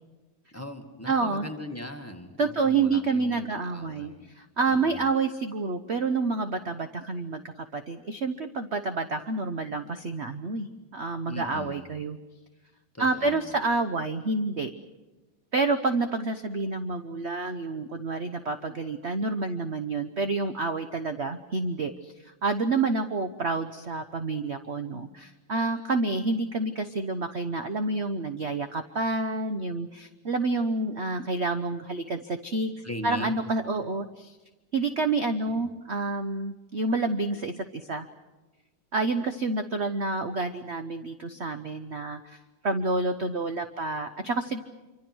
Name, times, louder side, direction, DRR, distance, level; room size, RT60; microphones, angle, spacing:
voice 1, 0.5-4.3 4.7-5.1 11.3-12.0 12.9-13.6 32.8-33.4 35.4-35.7, left 1 dB, 5° left, 5 dB, 1.8 m, -40 dB
voice 2, 1.1-1.5 2.4-7.4 7.7-12.2 13.0-14.7 15.5-32.7 33.0-34.4 34.7-38.1 38.9-42.4 42.6-44.6, right 3 dB, 45° right, 8 dB, 0.9 m, -28 dB
26.5 x 25.0 x 6.2 m, 1.2 s
omnidirectional pair, 2.3 m